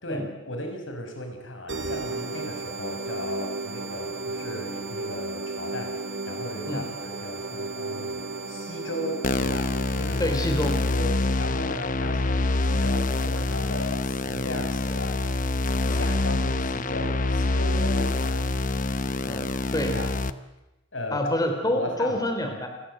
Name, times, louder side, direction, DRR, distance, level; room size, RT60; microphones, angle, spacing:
voice 1, 0.0-9.7 10.0-10.4 10.9-15.2 15.8-18.4 19.8-20.1 20.9-21.2 21.7-22.2, left 1 dB, 80° left, 4 dB, 6.1 m, -36 dB
sound 1, 1.7-11.0, right 2 dB, 65° right, 3.3 m, -34 dB
sound 2, 9.2-20.3, left 2 dB, 45° left, 1.0 m, -26 dB
voice 2, 10.2-10.8 15.9-16.1 19.2-19.9 21.1-22.7, left 1 dB, 20° left, 4 dB, 3.5 m, -27 dB
29.5 x 21.5 x 7.8 m, 0.99 s
head